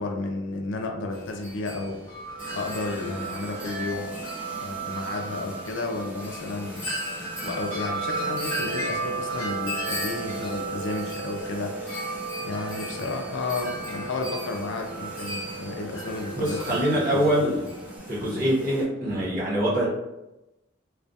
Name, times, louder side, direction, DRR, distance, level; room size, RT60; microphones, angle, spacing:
voice 1, 0.0-2.0 2.5-4.2 4.6-6.9 7.4-12.0 12.4-17.4, left 3 dB, 60° left, 3 dB, 0.4 m, -32 dB
Wind chime, 1.1-18.0, right 2 dB, 10° left, 0.8 m, -34 dB
sound 1, 2.4-18.8, equal, 5° right, 0.4 m, -43 dB
voice 2, 16.3-17.6 18.1-19.9, equal, 45° right, -7 dB, 0.9 m, -24 dB
2.3 x 2.2 x 2.6 m, 0.96 s
head